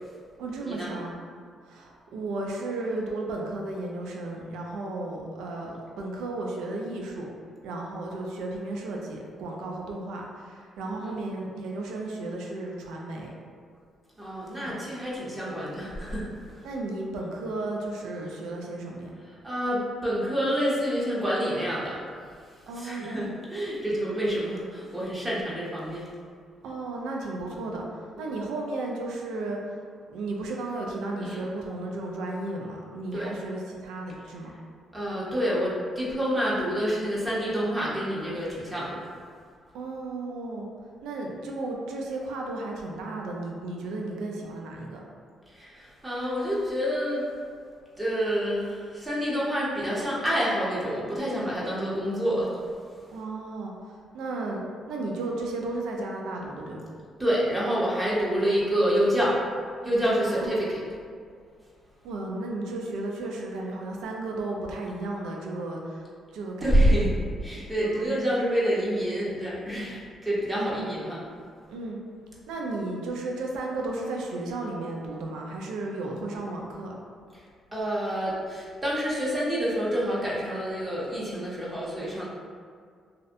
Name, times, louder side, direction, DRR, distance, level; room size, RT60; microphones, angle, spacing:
voice 1, 0.4-1.2 1.6-7.3 7.6-13.3 14.6-14.7 16.6-19.1 22.7-23.3 26.6-29.8 30.1-34.5 39.7-40.7 41.0-45.0 53.1-54.6 54.9-56.8 60.2-60.6 62.0-66.1 66.3-67.0 67.8-68.1 70.6-70.8 71.7-72.0 72.5-77.0, right 2 dB, 90° right, -1 dB, 0.3 m, -34 dB
voice 2, 14.2-16.3 16.5-16.6 19.4-22.0 22.7-26.0 28.1-28.2 31.2-31.4 33.1-33.3 34.9-39.1 45.5-47.3 48.0-52.6 57.2-59.3 59.8-60.8 66.6-67.1 67.4-71.2 77.3-77.4 77.7-82.3, equal, 15° right, -7 dB, 0.7 m, -27 dB
2.6 x 2.0 x 2.5 m, 2.1 s
cardioid pair, 90°, 0 cm